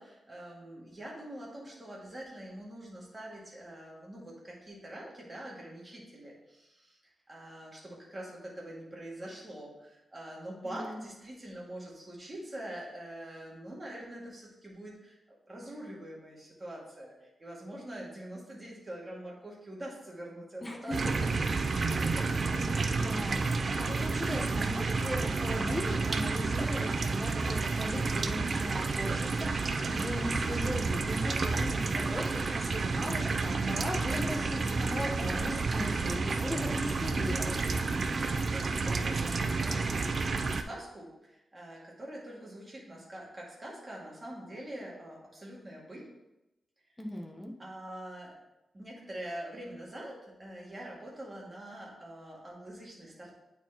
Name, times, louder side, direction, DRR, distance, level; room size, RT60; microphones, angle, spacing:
voice 1, 0.0-21.2 22.0-22.3 37.7-46.1 47.6-48.3 48.7-53.3, right 1 dB, 25° right, -4 dB, 2.1 m, -44 dB
voice 2, 10.6-11.0 20.6-21.1 21.9-23.4 23.8-37.6 47.0-47.5, left 1 dB, 10° left, 1 dB, 1.0 m, -38 dB
sound 1, 20.9-40.6, right 4 dB, 50° right, 0.4 m, -30 dB
8.8 x 4.6 x 2.9 m, 0.93 s
wide cardioid pair, 110°, 0 cm